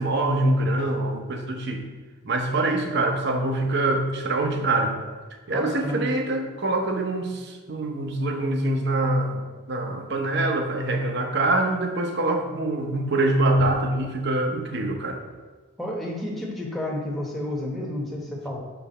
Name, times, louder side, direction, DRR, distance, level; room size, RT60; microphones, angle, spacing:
voice 1, 0.0-1.8 2.2-5.0 5.5-15.2, right 2 dB, 55° right, 4 dB, 0.7 m, -24 dB
voice 2, 5.5-6.1 15.8-18.6, left 1 dB, ahead, -3 dB, 1.0 m, -31 dB
6.7 x 3.3 x 5.4 m, 1.3 s
head